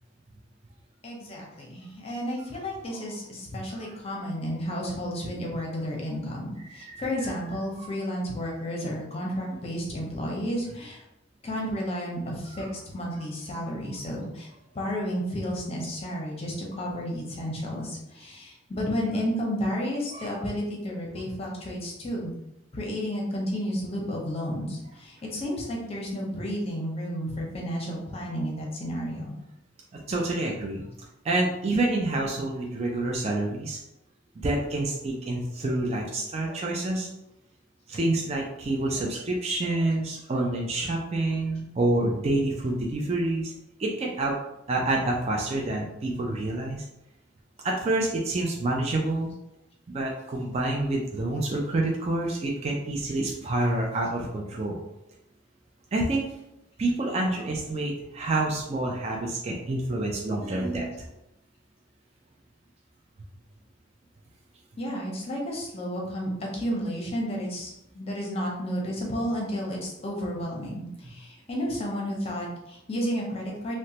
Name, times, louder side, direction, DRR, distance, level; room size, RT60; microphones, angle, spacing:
voice 1, 1.0-11.0 11.4-12.7 12.9-14.5 14.7-22.3 22.7-29.4 64.8-73.7, equal, 30° left, -2 dB, 0.7 m, -32 dB
voice 2, 6.6-7.0 7.8-7.9 12.6-12.7 20.1-20.3 30.1-30.9 31.2-33.8 34.4-37.1 37.9-43.5 43.8-44.4 44.7-46.8 47.6-49.3 49.9-54.8 55.9-56.2 56.8-60.9, right 2 dB, 30° right, -1 dB, 0.3 m, -28 dB
2.9 x 2.1 x 2.8 m, 0.87 s
head